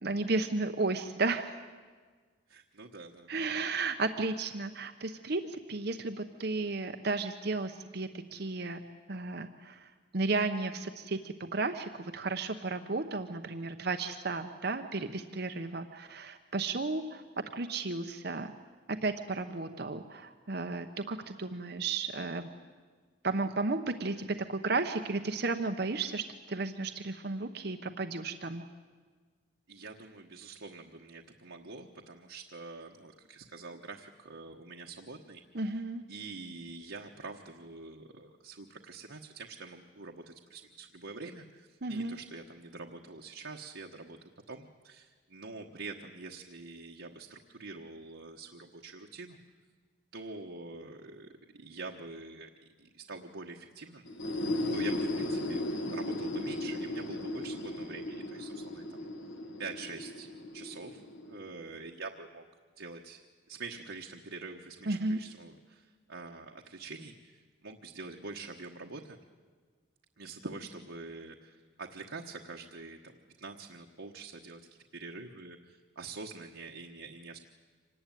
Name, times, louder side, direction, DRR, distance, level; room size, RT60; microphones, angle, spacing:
voice 1, 0.0-1.6 3.3-8.8 9.1-18.5 18.9-22.5 23.2-28.6 35.5-36.0 41.8-42.2 64.9-65.2, right 3 dB, 55° right, 6 dB, 0.9 m, -33 dB
voice 2, 2.5-3.3 29.7-35.4 36.1-49.4 50.1-52.5 52.8-54.0 54.7-55.6 55.9-58.8 59.6-62.4 62.8-63.2 63.5-69.2 70.2-74.6 74.9-77.4, right 3 dB, 75° right, 1 dB, 1.3 m, -45 dB
sound 1, 54.1-61.7, left 1 dB, 70° left, 1.9 m, -36 dB
25.5 x 19.0 x 9.2 m, 1.5 s
head